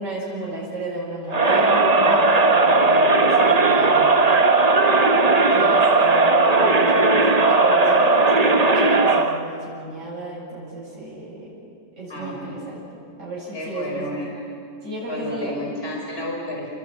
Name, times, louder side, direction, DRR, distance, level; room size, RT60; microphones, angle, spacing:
voice 1, 0.0-4.8 5.5-11.5 11.9-12.8 13.2-14.1 14.8-15.5, right 1 dB, 45° right, -6 dB, 8.2 m, -33 dB
Crowd, 1.3-9.4, right 3 dB, 25° right, 1.1 m, -17 dB
voice 2, 12.1-12.6 13.5-14.3 15.1-16.7, left 1 dB, 35° left, -1 dB, 5.3 m, -31 dB
29.0 x 21.5 x 9.4 m, 2.4 s
omnidirectional pair, 1.8 m